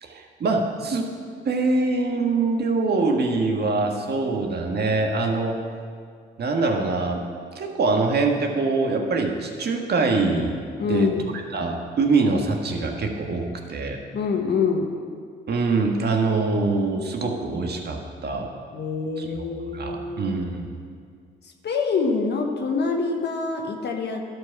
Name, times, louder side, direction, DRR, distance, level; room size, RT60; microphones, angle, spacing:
voice 1, 0.0-1.1 1.4-5.6 6.4-7.2 7.5-10.6 10.9-11.1 11.5-14.0 15.5-18.5 19.2-19.3 19.7-20.7, right 3 dB, 50° right, 2 dB, 1.5 m, -24 dB
voice 2, 10.8-11.2 14.1-14.9 18.7-20.4 21.4-24.2, left 4 dB, 55° left, 3 dB, 1.2 m, -25 dB
11.5 x 5.4 x 5.9 m, 2.1 s
hypercardioid pair, 55°, 21 cm